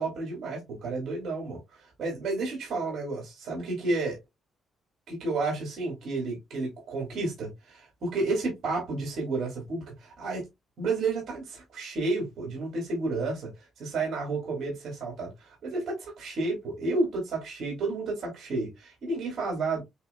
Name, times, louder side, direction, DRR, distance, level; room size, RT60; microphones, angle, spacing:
voice 1, 0.0-4.2 5.1-10.5 10.8-13.5 13.8-19.8, right 3 dB, 65° right, 3.1 m, -31 dB
8.2 x 2.8 x 2.2 m
cardioid pair, 90°, 0 cm